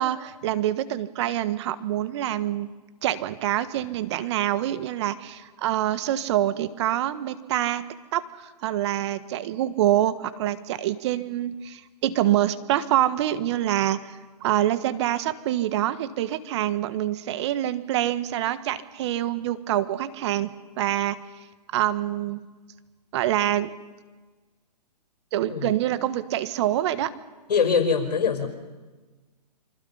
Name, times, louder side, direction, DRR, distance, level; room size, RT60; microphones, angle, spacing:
voice 1, 0.0-2.7 3.0-7.8 8.1-21.2 21.7-22.4 23.1-23.7 25.3-27.1, right 13 dB, 40° right, 13 dB, 1.3 m, -26 dB
voice 2, 27.5-28.5, left 6 dB, 70° left, 6 dB, 4.9 m, -23 dB
27.5 x 25.0 x 5.6 m, 1.3 s
hypercardioid pair, 135°, 21 cm